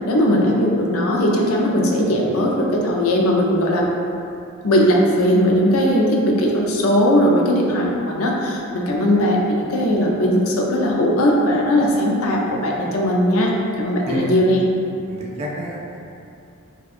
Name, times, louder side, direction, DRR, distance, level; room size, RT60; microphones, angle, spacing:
voice 1, 0.1-3.9 4.6-14.6, equal, 70° left, -1 dB, 0.5 m, -18 dB
voice 2, 15.1-16.0, right 1 dB, 30° right, -4 dB, 0.3 m, -28 dB
4.0 x 2.3 x 2.4 m, 2.6 s
head